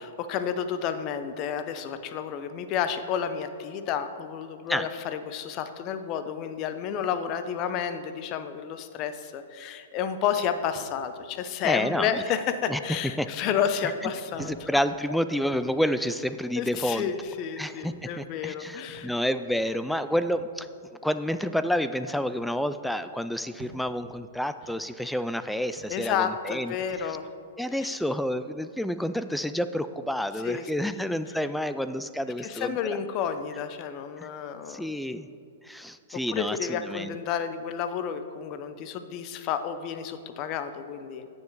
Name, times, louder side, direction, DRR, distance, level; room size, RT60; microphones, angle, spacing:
voice 1, 0.2-14.7 16.6-19.1 25.9-27.3 27.7-28.0 30.4-30.9 32.4-34.9 36.3-41.3, left 8 dB, 40° left, 10 dB, 0.7 m, -31 dB
sound 1, 10.8-11.2 11.9-12.1 13.1-13.3 14.3-14.6 15.5-15.8 16.7-17.0 17.8-18.1 18.9-19.2 20.1-20.4 21.3-21.5 22.4-22.6 23.6-23.8 24.6-24.9 25.8-26.0 26.9-27.1, right 5 dB, 30° right, 1.2 m, -48 dB
voice 2, 11.6-12.2 12.7-12.8 13.2-13.3 14.4-17.1 17.6-20.7 21.0-27.1 27.6-33.0 34.2-34.3 34.7-35.3 35.6-37.1, equal, ahead, 11 dB, 0.3 m, -29 dB
9.3 x 7.2 x 4.6 m, 2.5 s
hypercardioid pair, 125°, 0 cm